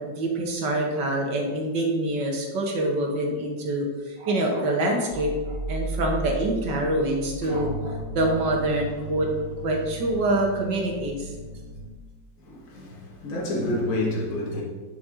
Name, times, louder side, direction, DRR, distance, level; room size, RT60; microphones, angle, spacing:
voice 1, 0.0-9.3 9.6-11.3, right 1 dB, 60° right, 2.0 m, -26 dB
sound 1, 5.1-11.9, right 2 dB, 70° left, 2.8 m, -35 dB
voice 2, 12.4-14.6, left 1 dB, 40° left, 2.0 m, -28 dB
11.0 x 5.7 x 3.9 m
omnidirectional pair, 2.3 m